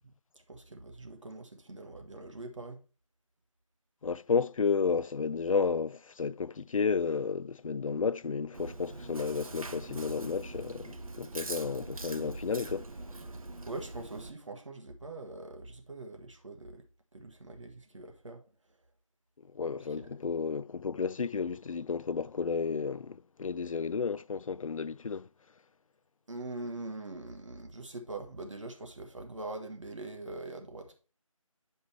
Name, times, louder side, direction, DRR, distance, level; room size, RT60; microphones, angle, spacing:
voice 1, 0.5-2.8 13.7-16.8 17.1-18.4 20.0-20.1 26.3-30.9, right 2 dB, 60° right, 1.5 m, -43 dB
voice 2, 4.0-12.9 19.5-25.3, left 5 dB, 75° left, 0.4 m, -32 dB
Chewing mastication, 8.5-14.3, right 2 dB, 85° right, 0.9 m, -42 dB
9.2 x 5.4 x 3.3 m
figure-of-eight pair, 170°, 18 cm